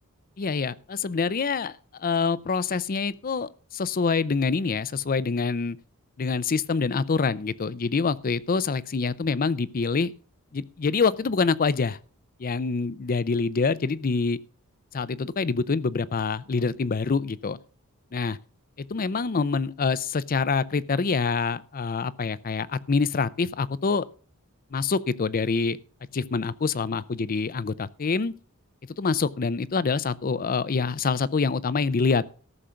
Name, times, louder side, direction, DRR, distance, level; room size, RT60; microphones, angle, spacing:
voice 1, 0.4-5.8 6.2-10.1 10.5-12.0 12.4-14.4 14.9-17.6 18.1-18.4 18.8-24.0 24.7-25.8 26.1-28.3 29.0-32.2, left 4 dB, 40° left, 0.5 m, -26 dB
14.0 x 6.5 x 5.7 m
head